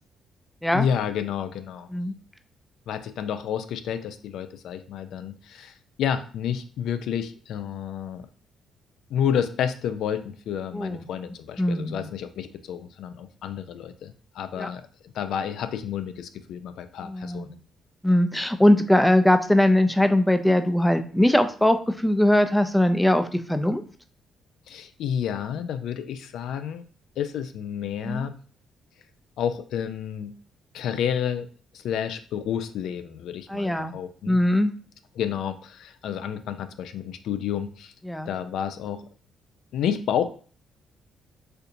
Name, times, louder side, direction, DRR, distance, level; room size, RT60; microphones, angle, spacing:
voice 1, 0.7-1.9 2.9-8.3 9.1-14.9 15.1-17.6 24.7-26.8 27.2-28.3 29.4-30.3 30.7-31.5 31.7-34.4 35.2-37.9 38.3-39.1 39.7-40.2, left 8 dB, 80° left, 10 dB, 0.3 m, -30 dB
voice 2, 10.7-11.0 11.6-12.1 14.6-14.7 17.0-17.5 18.0-23.8 28.1-28.3 33.5-34.0 34.3-34.7 38.1-38.3, left 1 dB, 5° left, 9 dB, 0.4 m, -21 dB
4.3 x 2.7 x 2.5 m, 0.42 s
cardioid pair, 90°, 0 cm